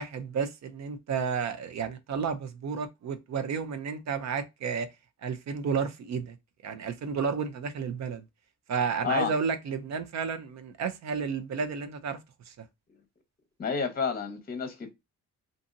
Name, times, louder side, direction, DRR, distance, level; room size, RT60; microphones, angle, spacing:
voice 1, 0.0-4.9 5.2-6.4 6.6-8.2 8.7-12.2 12.5-12.7, right 6 dB, 60° right, 0.5 m, -32 dB
voice 2, 13.6-14.9, left 6 dB, 30° left, 0.8 m, -30 dB
2.6 x 2.6 x 2.5 m
cardioid pair, 90°, 31 cm